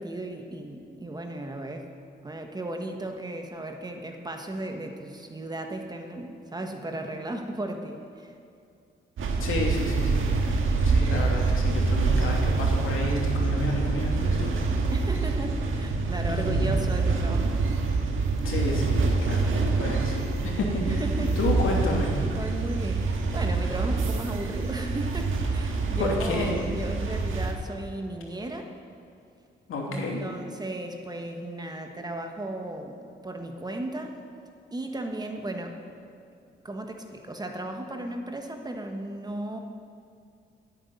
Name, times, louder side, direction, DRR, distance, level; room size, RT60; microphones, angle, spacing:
voice 1, 0.0-1.9 2.2-8.3 14.9-17.6 20.9-21.4 22.3-28.7 29.9-34.2 34.7-35.8 36.6-39.6, right 1 dB, 20° right, 4 dB, 1.3 m, -35 dB
sound 1, 9.2-27.5, right 3 dB, 75° right, 1.7 m, -26 dB
voice 2, 9.4-10.3 10.8-14.6 16.3-16.7 18.4-19.5 19.8-20.8 21.2-22.1 25.9-26.5 29.7-30.2, left 2 dB, 85° left, -1 dB, 2.8 m, -30 dB
10.5 x 9.3 x 9.6 m, 2.5 s
cardioid pair, 130°, 21 cm